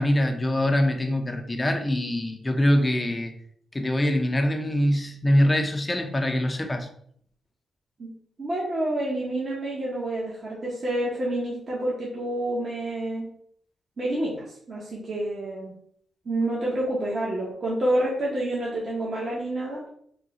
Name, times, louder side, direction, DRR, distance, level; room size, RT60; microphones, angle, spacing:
voice 1, 0.0-3.3 3.7-6.9, left 1 dB, 20° left, 5 dB, 0.6 m, -23 dB
voice 2, 8.4-13.3 14.0-15.7 16.2-19.9, right 1 dB, 45° right, -6 dB, 1.2 m, -28 dB
3.7 x 2.3 x 4.1 m, 0.64 s
cardioid pair, 85°, 0 cm